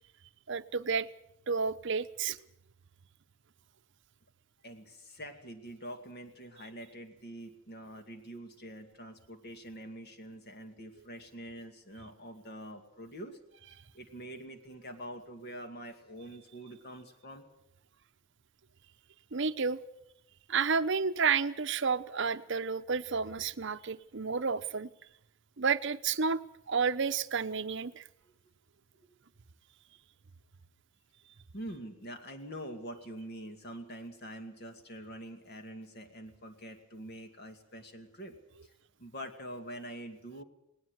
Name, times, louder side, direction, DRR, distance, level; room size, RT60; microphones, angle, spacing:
voice 1, 0.5-1.1 1.5-2.4 19.3-19.8 20.5-24.9 25.6-26.4 26.7-28.0, right 5 dB, 55° right, 13 dB, 0.8 m, -31 dB
voice 2, 4.6-13.4 13.9-17.4 31.5-38.3 39.0-40.4, right 1 dB, 50° left, 6 dB, 2.3 m, -45 dB
19.0 x 19.0 x 8.0 m, 0.78 s
head